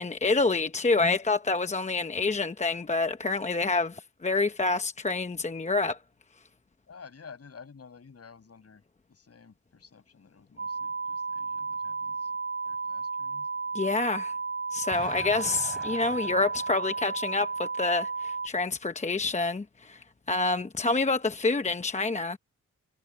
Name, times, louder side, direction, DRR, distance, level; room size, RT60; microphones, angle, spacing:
voice 1, 0.0-6.0 13.7-14.3 14.7-22.4, left 3 dB, 25° left, 0.8 m, -27 dB
voice 2, 6.9-12.3 12.7-13.5, left 5 dB, 55° left, 7.8 m, -51 dB
sound 1, 10.6-18.5, right 4 dB, 45° right, 1.4 m, -33 dB
Explosion, 14.9-17.9, equal, ahead, 6.8 m, -47 dB
wide cardioid pair, 95°, 30 cm